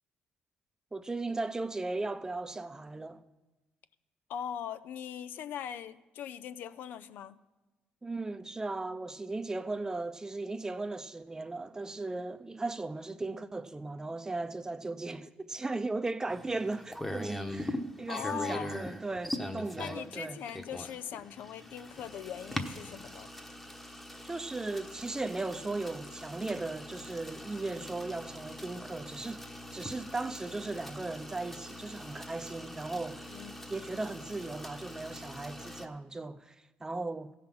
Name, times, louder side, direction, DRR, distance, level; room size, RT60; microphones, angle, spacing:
voice 1, 0.9-3.2 8.0-20.4 24.2-33.3 33.7-37.3, right 2 dB, 20° right, 0.6 m, -37 dB
voice 2, 4.3-7.4 18.1-18.9 19.8-23.3 33.3-33.6, left 9 dB, 75° left, 0.5 m, -40 dB
sound 1, 16.3-35.9, left 1 dB, 10° left, 1.1 m, -42 dB
15.5 x 5.8 x 6.0 m
cardioid pair, 80°, 3 cm